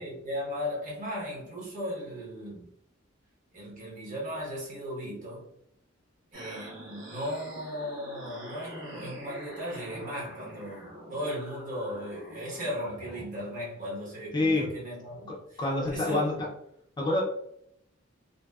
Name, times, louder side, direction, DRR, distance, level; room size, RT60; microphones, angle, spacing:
voice 1, 0.0-2.7 3.5-5.5 6.3-15.2 15.5-15.6 15.9-16.5, equal, 40° right, 0.9 m, -36 dB
sound 1, 6.3-13.2, equal, 70° right, 1.3 m, -45 dB
voice 2, 14.3-14.7 15.3-16.5 17.0-17.2, left 2 dB, 20° left, 0.4 m, -27 dB
2.6 x 2.1 x 2.2 m
head